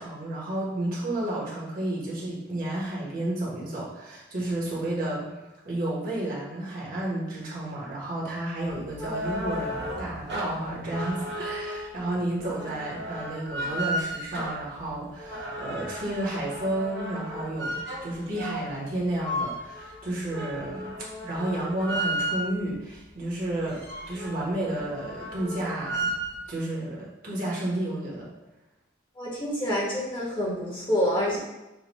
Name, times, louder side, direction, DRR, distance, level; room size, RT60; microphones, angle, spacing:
voice 1, 0.0-5.3 5.6-20.9 21.2-26.1 26.5-28.3, right 1 dB, 45° right, -5 dB, 1.3 m, -31 dB
sound 1, 8.7-22.7 23.2-23.3 23.5-26.4, equal, 60° right, 1.1 m, -34 dB
voice 2, 29.1-31.4, equal, 25° left, -7 dB, 1.5 m, -27 dB
6.7 x 2.6 x 3.0 m, 0.99 s
head